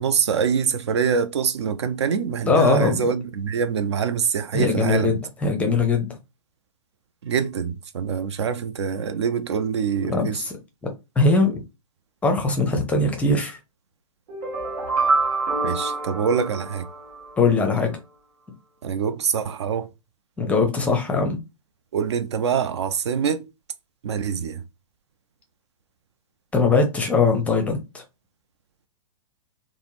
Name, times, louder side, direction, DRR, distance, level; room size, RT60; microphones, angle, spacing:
voice 1, 0.0-5.1 7.2-10.4 15.6-16.9 18.8-19.9 21.9-23.5 24.0-24.6, right 6 dB, 55° right, 0.4 m, -24 dB
voice 2, 2.5-3.1 4.5-6.1 10.1-10.3 11.2-11.6 12.2-13.6 17.4-17.9 20.4-21.4 26.5-27.8, left 3 dB, 10° left, 0.6 m, -20 dB
sound 1, 14.3-17.3, right 3 dB, 40° right, 1.3 m, -26 dB
3.4 x 2.1 x 2.9 m
figure-of-eight pair, 110°, 17 cm